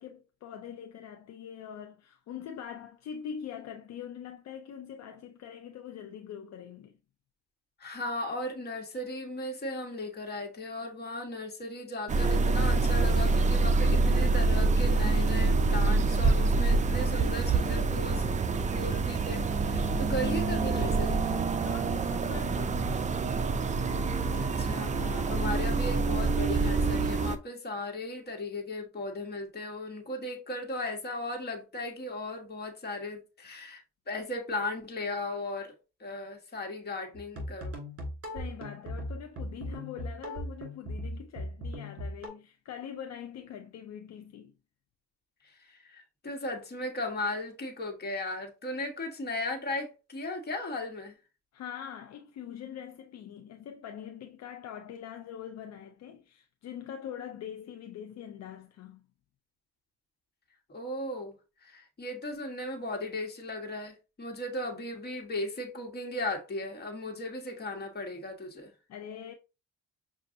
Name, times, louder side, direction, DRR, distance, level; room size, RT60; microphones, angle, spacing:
voice 1, 0.0-7.0 21.6-23.1 38.3-44.5 51.5-59.0 68.9-69.3, left 8 dB, 60° left, 0.5 m, -43 dB
voice 2, 7.8-18.2 18.7-21.2 24.3-35.7 36.0-37.7 45.4-51.2 60.7-61.3 61.6-68.7, left 2 dB, 35° left, 1.3 m, -36 dB
sound 1, 12.1-27.4, right 3 dB, 25° right, 0.4 m, -26 dB
sound 2, 37.1-42.3, equal, 50° right, 1.9 m, -38 dB
6.0 x 2.5 x 2.6 m
cardioid pair, 90°, 30 cm